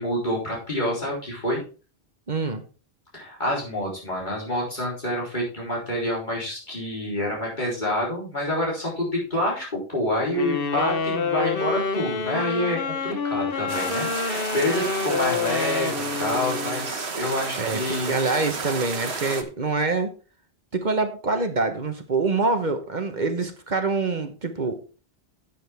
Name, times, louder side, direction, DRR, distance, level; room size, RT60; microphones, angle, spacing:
voice 1, 0.0-1.6 3.1-18.3, left 1 dB, 50° left, -4 dB, 4.0 m, -27 dB
voice 2, 2.3-2.6 17.6-17.8 18.1-20.1 20.7-24.8, right 3 dB, 50° right, 7 dB, 1.3 m, -25 dB
sound 1, 10.3-16.9, left 5 dB, 65° left, 1.2 m, -28 dB
sound 2, 13.7-19.4, right 4 dB, 85° right, 1.4 m, -32 dB
10.0 x 8.4 x 3.5 m, 0.35 s
omnidirectional pair, 1.1 m